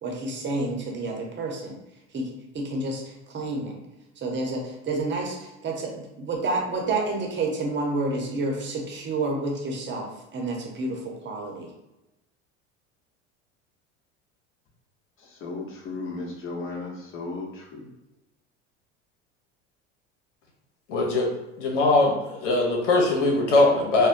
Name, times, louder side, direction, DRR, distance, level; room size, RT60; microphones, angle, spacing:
voice 1, 0.0-1.7 2.1-3.7 4.2-11.7, right 2 dB, 30° right, 0 dB, 1.0 m, -29 dB
voice 2, 15.4-17.8, left 3 dB, 35° left, -1 dB, 1.0 m, -35 dB
voice 3, 20.9-21.3 21.6-24.1, left 2 dB, 75° left, 0 dB, 0.8 m, -21 dB
4.3 x 2.1 x 2.6 m, 0.98 s
hypercardioid pair, 75°, 36 cm